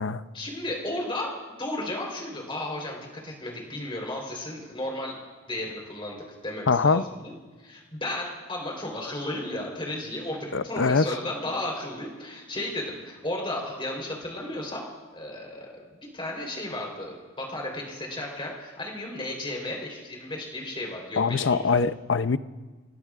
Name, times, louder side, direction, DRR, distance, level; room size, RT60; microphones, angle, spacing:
voice 1, 0.3-5.2 5.5-6.2 6.4-7.3 7.6-14.8 15.1-15.7 16.1-21.6, left 1 dB, 25° left, -1 dB, 3.9 m, -34 dB
voice 2, 6.7-7.0 10.5-11.0 21.2-22.4, left 4 dB, 70° left, 13 dB, 0.6 m, -23 dB
28.5 x 20.0 x 2.5 m, 1.3 s
head